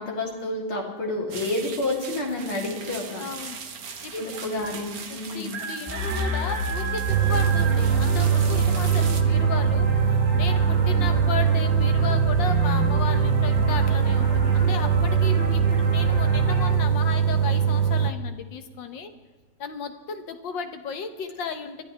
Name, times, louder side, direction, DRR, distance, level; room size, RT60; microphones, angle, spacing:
voice 1, 0.0-3.2 4.1-5.6, left 2 dB, 85° left, -2 dB, 4.0 m, -29 dB
sound 1, 1.3-9.2, right 6 dB, 50° right, 1.5 m, -37 dB
voice 2, 3.2-3.6 4.0-4.4 5.1-19.1 19.6-21.8, left 6 dB, 65° left, 8 dB, 1.7 m, -34 dB
sound 2, 5.9-16.7, equal, 5° right, 5.3 m, -29 dB
sound 3, 7.1-18.1, right 7 dB, 70° right, 0.8 m, -22 dB
22.0 x 14.0 x 3.4 m, 1.3 s
omnidirectional pair, 2.3 m